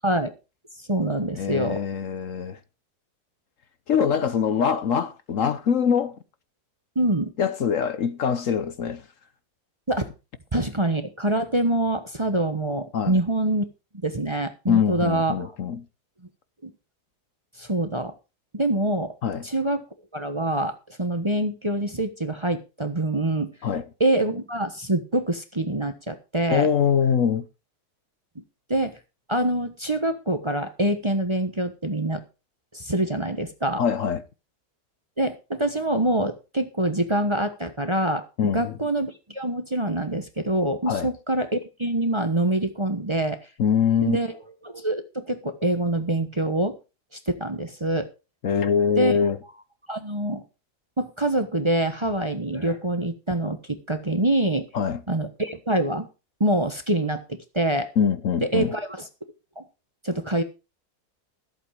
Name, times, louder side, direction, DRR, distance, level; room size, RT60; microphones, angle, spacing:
voice 1, 0.8-1.8 6.9-7.3 9.9-10.1 10.5-13.6 14.0-15.5 16.6-16.7 17.6-18.1 18.5-19.1 19.4-19.8 20.1-23.5 24.0-26.7 28.7-29.0 29.3-32.2 32.7-33.8 35.2-43.4 44.0-44.4 44.6-46.8 47.3-48.1 49.0-49.1 49.9-50.4 51.0-54.7 55.1-56.1 56.4-57.2 57.5-57.9 58.4-59.1 59.6-59.7 60.0-60.4, right 1 dB, 20° right, 1.1 m, -25 dB
voice 2, 1.4-2.6 3.9-6.2 7.4-9.0 12.9-13.2 14.7-15.9 19.2-19.4 23.6-23.8 26.5-27.5 33.8-34.2 38.4-38.8 40.9-41.1 43.6-44.2 48.4-49.4 54.7-55.0 58.0-58.7, left 7 dB, 60° left, 1.1 m, -23 dB
14.5 x 8.2 x 4.9 m
omnidirectional pair, 1.7 m